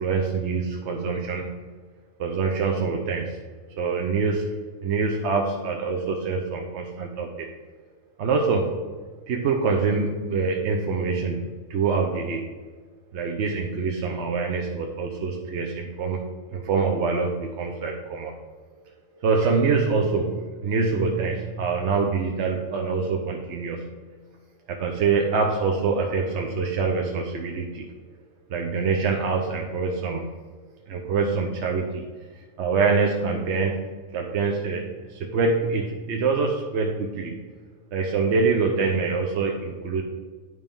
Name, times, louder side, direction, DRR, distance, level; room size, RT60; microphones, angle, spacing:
voice 1, 0.0-1.6 2.2-3.4 3.7-7.5 8.2-8.8 9.3-12.6 13.1-18.3 19.2-24.0 24.7-27.9 28.5-30.3 30.9-32.0 32.6-37.4 37.9-40.0, right 4 dB, 60° right, 2 dB, 0.8 m, -25 dB
9.2 x 3.3 x 5.2 m, 1.5 s
omnidirectional pair, 1.5 m